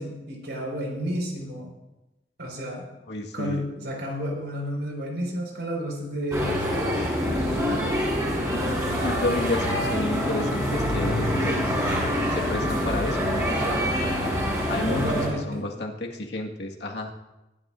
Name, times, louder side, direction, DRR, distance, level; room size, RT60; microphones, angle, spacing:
voice 1, 0.0-1.7 2.4-2.8 3.3-6.6 14.9-15.7, equal, 75° right, 0 dB, 5.1 m, -31 dB
voice 2, 3.1-3.6 7.2-8.2 8.5-11.7 12.3-13.9 14.7-17.1, left 1 dB, 75° left, 0 dB, 1.8 m, -31 dB
sound 1, 6.3-15.3, equal, 20° right, 5.8 m, -25 dB
23.5 x 12.0 x 2.6 m, 1.0 s
head